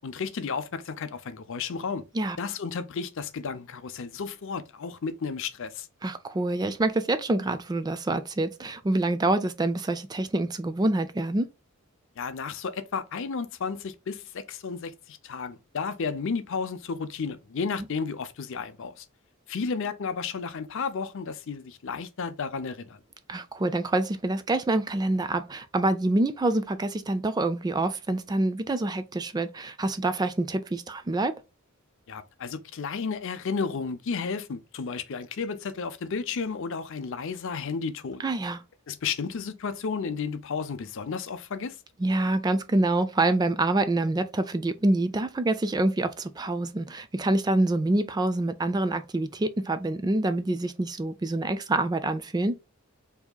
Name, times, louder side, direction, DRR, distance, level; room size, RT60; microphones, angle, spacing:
voice 1, 0.0-2.0 2.4-5.9 12.2-19.0 19.5-23.0 32.1-38.2 38.9-41.8, left 5 dB, 60° left, 0.5 m, -33 dB
voice 2, 6.0-11.5 23.3-31.3 38.2-38.6 42.0-52.6, right 2 dB, 20° right, 0.3 m, -26 dB
4.7 x 2.8 x 2.2 m
head